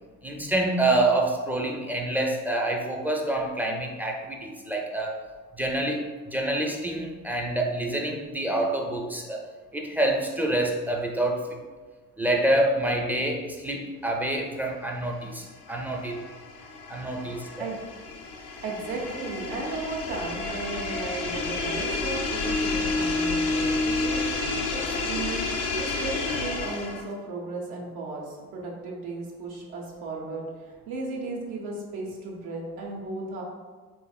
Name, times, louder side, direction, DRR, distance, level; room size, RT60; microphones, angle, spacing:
voice 1, 0.2-5.2 5.6-9.4 9.7-11.5 12.2-16.2 16.9-17.5, right 1 dB, 5° right, 0 dB, 0.4 m, -27 dB
sound 1, 15.2-27.1, left 3 dB, 80° left, 0.7 m, -30 dB
voice 2, 18.6-25.4 25.8-33.4, right 3 dB, 80° right, -2 dB, 0.8 m, -35 dB
3.4 x 3.2 x 2.3 m, 1.4 s
hypercardioid pair, 50°, 42 cm